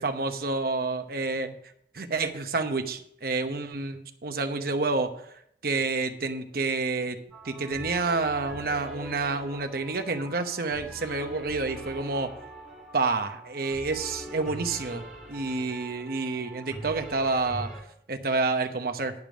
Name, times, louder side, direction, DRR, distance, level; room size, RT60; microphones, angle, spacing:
voice 1, 0.0-1.6 1.9-5.1 5.6-7.2 7.4-12.3 12.9-17.7 18.1-19.1, right 3 dB, 55° right, 7 dB, 0.9 m, -29 dB
sound 1, 7.3-17.8, right 1 dB, ahead, 2.6 m, -42 dB
10.5 x 5.2 x 6.3 m, 0.69 s
head